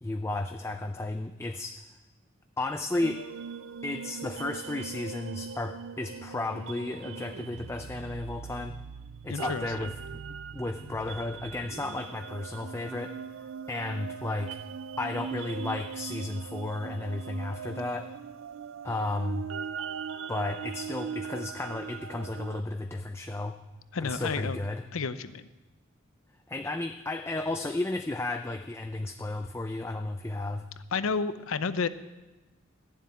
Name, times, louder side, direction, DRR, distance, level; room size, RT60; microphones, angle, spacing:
voice 1, 0.0-1.8 2.6-3.2 3.8-8.7 9.2-9.9 10.5-13.1 13.7-14.6 15.0-18.1 18.8-19.5 20.3-23.5 24.0-24.8 26.5-30.6, left 2 dB, 10° left, 6 dB, 0.4 m, -33 dB
sound 1, 3.0-22.6, right 6 dB, 70° right, 0.4 m, -40 dB
voice 2, 9.3-9.9 23.9-24.6 24.9-25.5 30.9-31.9, left 5 dB, 85° left, 14 dB, 0.6 m, -31 dB
12.5 x 7.4 x 9.5 m, 1.1 s
head